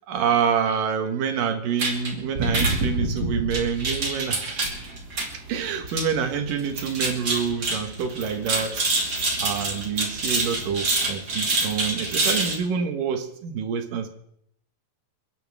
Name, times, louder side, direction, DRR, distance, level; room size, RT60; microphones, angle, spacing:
voice 1, 0.1-4.6 5.5-9.1 9.4-14.1, right 7 dB, 70° right, 6 dB, 3.1 m, -27 dB
sound 1, 1.8-12.6, right 2 dB, 30° right, 2.7 m, -27 dB
29.5 x 11.0 x 3.6 m, 0.72 s
omnidirectional pair, 4.0 m